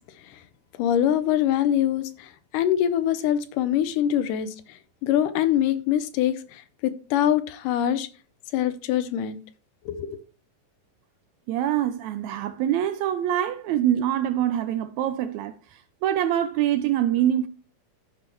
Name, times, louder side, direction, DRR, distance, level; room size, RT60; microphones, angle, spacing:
voice 1, 0.8-4.6 5.0-8.1 8.5-9.4 9.9-10.2, left 10 dB, 85° left, 2.3 m, -24 dB
voice 2, 11.5-15.5 16.0-17.5, right 11 dB, 80° right, 1.7 m, -24 dB
14.0 x 5.4 x 3.0 m
omnidirectional pair, 3.6 m